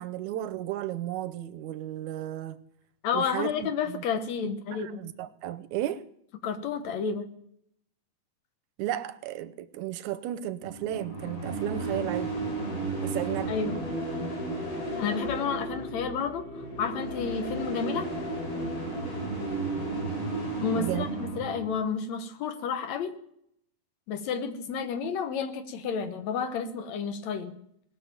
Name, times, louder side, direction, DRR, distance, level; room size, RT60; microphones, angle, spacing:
voice 1, 0.0-2.6 3.1-4.0 4.7-6.0 8.8-12.4 13.0-13.5 20.8-21.1, right 13 dB, 85° right, 2.2 m, -34 dB
voice 2, 3.0-5.0 6.4-7.3 13.5-13.8 15.0-18.1 20.6-23.2 24.1-27.5, left 6 dB, 75° left, 2.4 m, -31 dB
sound 1, 10.6-21.7, right 2 dB, 55° left, 8.6 m, -33 dB
19.5 x 6.7 x 9.0 m
omnidirectional pair, 3.3 m